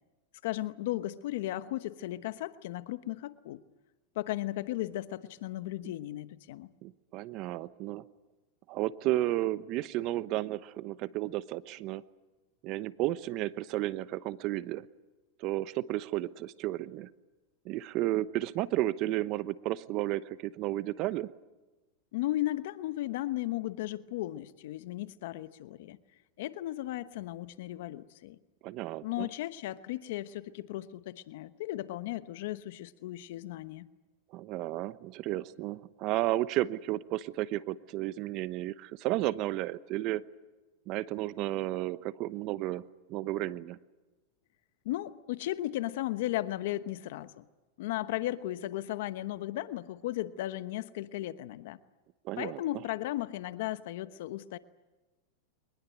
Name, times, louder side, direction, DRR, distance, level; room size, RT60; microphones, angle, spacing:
voice 1, 0.4-3.6 4.1-6.7 22.1-26.0 26.4-28.4 29.0-33.9 44.8-47.4 47.8-51.8 52.4-54.6, left 15 dB, 70° left, 13 dB, 1.1 m, -35 dB
voice 2, 6.8-8.0 8.7-12.0 12.6-14.9 15.4-17.1 17.6-21.3 28.6-29.3 34.3-40.2 40.9-42.8 43.1-43.8 52.2-52.6, right 16 dB, 45° right, 15 dB, 1.0 m, -33 dB
23.0 x 21.0 x 9.3 m, 1.2 s
supercardioid pair, 125°, 0 cm